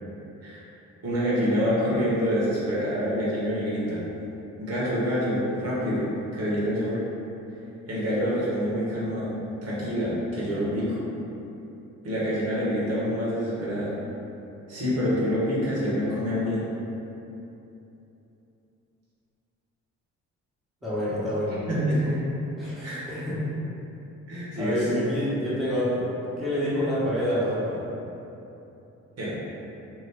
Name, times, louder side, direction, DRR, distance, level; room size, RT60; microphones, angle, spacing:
voice 1, 1.0-4.0 4.6-7.0 7.8-9.4 9.6-11.0 12.0-13.9 14.7-16.7 21.7-22.0 22.8-23.0 24.3-25.0 29.2-29.3, equal, 55° right, -8 dB, 1.1 m, -26 dB
voice 2, 20.8-21.6 22.0-22.2 22.6-23.4 24.6-26.1 26.4-27.8, equal, ahead, -11 dB, 1.0 m, -27 dB
2.7 x 2.5 x 3.4 m, 2.9 s
cardioid pair, 90°, 30 cm